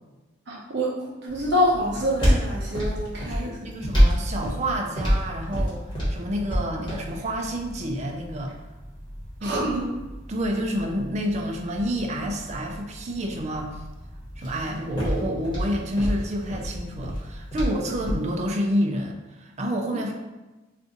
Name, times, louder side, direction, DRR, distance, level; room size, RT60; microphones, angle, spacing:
voice 1, 0.5-3.5 9.4-9.9, equal, 60° right, -4 dB, 0.8 m, -26 dB
sound 1, 1.3-18.3, equal, 25° left, 1.3 m, -29 dB
voice 2, 3.2-8.5 9.4-9.7 10.3-13.8 14.4-20.1, equal, 35° right, 1 dB, 0.4 m, -29 dB
2.5 x 2.5 x 3.7 m, 1.1 s
head